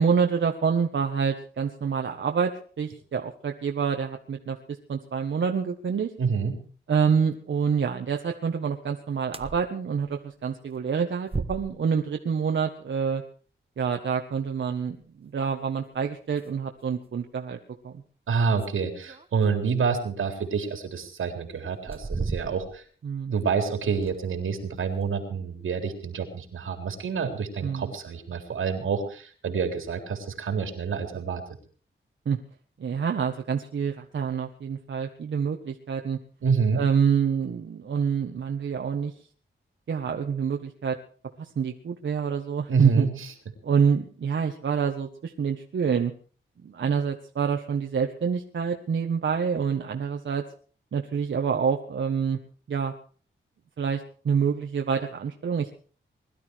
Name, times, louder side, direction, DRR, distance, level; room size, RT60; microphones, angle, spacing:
voice 1, 0.0-4.6 4.9-6.1 6.9-13.2 13.8-17.6 17.8-17.9 23.0-23.3 27.6-27.9 32.2-32.4 32.8-36.2 36.7-39.1 39.9-41.0 41.4-43.1 43.6-46.1 46.6-50.4 50.9-52.4 52.7-52.9 53.8-55.7, right 6 dB, 70° right, 3 dB, 1.5 m, -27 dB
voice 2, 6.2-6.6 18.3-22.8 23.3-31.4 36.4-36.8 42.7-43.3, right 5 dB, 90° right, 5 dB, 3.8 m, -27 dB
sound 1, 9.2-9.6 10.0-10.1 11.3-12.0 14.7-14.8 15.9-16.0 16.3-16.5 17.0-17.1 18.3-19.7 20.7-20.8 21.7-22.9 23.2-23.3 23.9-24.4 24.8-25.1, right 3 dB, 30° right, 1.3 m, -35 dB
21.5 x 12.5 x 4.7 m, 0.42 s
wide cardioid pair, 100°, 20 cm